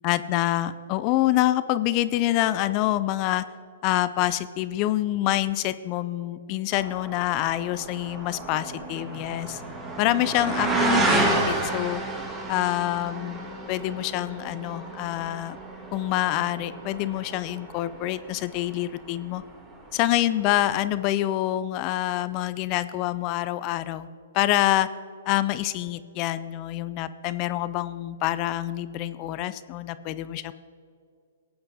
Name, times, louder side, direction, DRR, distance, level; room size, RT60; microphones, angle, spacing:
voice 1, 0.0-3.4 3.8-9.6 10.0-12.0 12.5-15.6 15.9-19.4 19.9-24.1 24.3-24.9 25.3-30.5, left 14 dB, 35° left, 14 dB, 0.4 m, -26 dB
sound 1, 6.7-19.2 19.4-20.0 20.6-20.7, right 2 dB, 20° right, 1.7 m, -30 dB
18.5 x 8.7 x 2.8 m, 2.3 s
hypercardioid pair, 125°, 0 cm